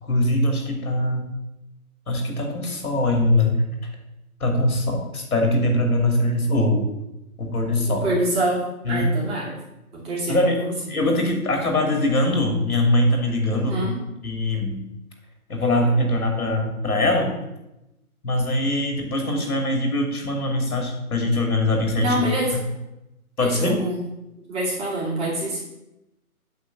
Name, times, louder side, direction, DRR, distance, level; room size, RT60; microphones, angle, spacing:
voice 1, 0.0-1.3 2.1-3.6 4.4-6.8 7.4-8.1 8.8-9.1 10.3-10.6 10.9-13.8 14.2-14.9 15.5-17.3 18.2-22.1 23.4-23.8, left 1 dB, 75° left, 2 dB, 2.9 m, -22 dB
voice 2, 7.8-8.6 8.9-9.6 10.0-10.7 13.5-13.9 22.0-22.6 23.4-24.0 24.5-25.6, right 1 dB, 15° right, -5 dB, 2.3 m, -25 dB
8.4 x 4.0 x 6.9 m, 0.91 s
figure-of-eight pair, 140°, 44 cm